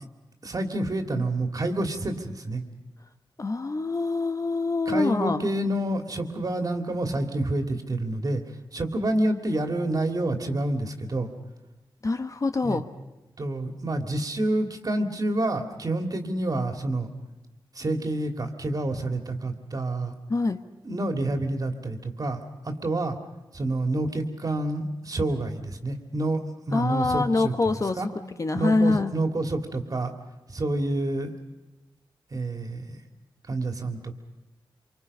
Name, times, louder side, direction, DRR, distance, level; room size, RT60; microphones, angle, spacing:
voice 1, 0.4-2.6 4.9-8.4 8.7-11.3 12.6-12.8 13.4-17.1 17.8-20.1 20.8-23.2 23.5-26.4 26.7-28.1 28.6-30.1 30.5-31.3 32.3-33.0 33.5-34.1, right 1 dB, 45° right, 5 dB, 2.6 m, -28 dB
voice 2, 3.4-5.4 12.0-12.8 20.3-20.6 26.7-28.0 28.4-29.1, left 3 dB, 40° left, 8 dB, 1.1 m, -25 dB
27.0 x 24.5 x 5.5 m, 1.1 s
wide cardioid pair, 105°, 9 cm